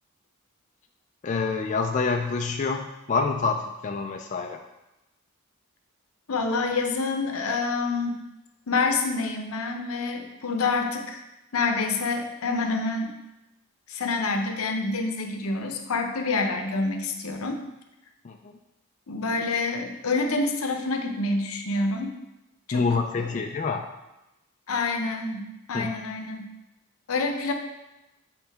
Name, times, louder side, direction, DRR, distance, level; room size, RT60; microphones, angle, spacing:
voice 1, 1.2-4.6 18.2-18.5 22.7-23.8 25.7-25.9, left 4 dB, 35° left, 3 dB, 0.3 m, -27 dB
voice 2, 6.3-8.2 8.7-11.2 11.5-13.1 13.9-17.6 19.1-22.1 22.7-22.8 23.1-23.4 24.7-26.5 27.1-27.5, left 3 dB, 80° left, 4 dB, 0.7 m, -27 dB
7.6 x 3.9 x 3.5 m, 0.96 s
head